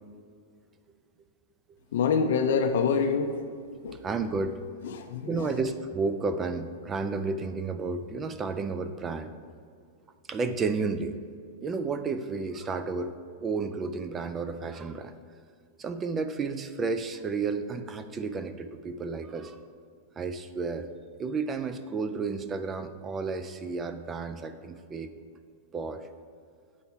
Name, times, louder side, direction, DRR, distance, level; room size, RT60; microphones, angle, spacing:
voice 1, 1.9-3.4 3.8-4.0 4.8-5.6, left 5 dB, 70° left, 5 dB, 0.5 m, -26 dB
voice 2, 4.0-4.6 5.3-9.3 10.3-11.2 11.6-13.1 13.4-15.1 15.8-19.6 20.2-20.9 21.2-25.1 25.7-26.0, right 4 dB, 15° right, 10 dB, 0.3 m, -32 dB
8.3 x 4.6 x 4.2 m, 2.3 s
supercardioid pair, 165°, 0 cm